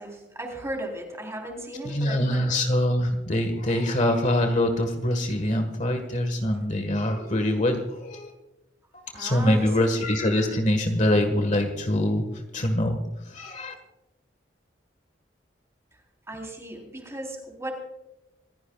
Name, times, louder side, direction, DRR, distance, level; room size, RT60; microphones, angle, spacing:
voice 1, 0.0-2.6 9.1-9.7 15.9-16.0 16.3-17.7, right 1 dB, 15° right, 2 dB, 3.7 m, -36 dB
voice 2, 1.8-8.3 8.9-13.0 13.2-13.7, left 1 dB, 40° left, 6 dB, 1.6 m, -24 dB
27.0 x 15.5 x 2.4 m, 0.94 s
head